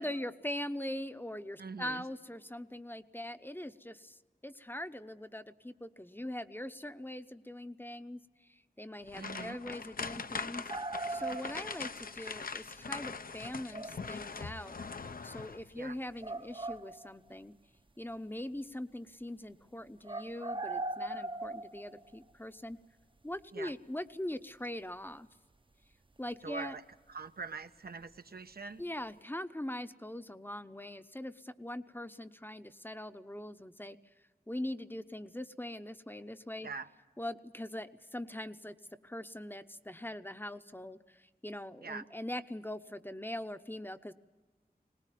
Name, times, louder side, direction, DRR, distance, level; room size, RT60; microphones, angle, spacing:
voice 1, 0.0-8.2 8.5-10.6 11.1-14.8 15.2-17.5 18.0-22.8 23.2-25.3 26.2-26.7 28.8-34.0 34.5-36.7 37.2-38.8 39.0-44.1, left 1 dB, 15° left, 11 dB, 0.8 m, -42 dB
voice 2, 1.6-2.1 9.2-9.6 15.8-16.0 23.5-23.7 26.4-26.8 27.1-28.8 36.6-36.9 41.8-42.0, right 4 dB, 80° right, 8 dB, 1.0 m, -43 dB
sound 1, 9.1-15.7 16.1-16.3 16.7-16.8, left 4 dB, 65° left, 0.7 m, -42 dB
sound 2, 10.7-12.0 13.7-14.1 15.4-15.5 16.2-17.4 20.0-22.2 24.6-24.7, right 2 dB, 30° right, 0.8 m, -39 dB
21.5 x 19.5 x 9.2 m, 1.3 s
wide cardioid pair, 75°, 16 cm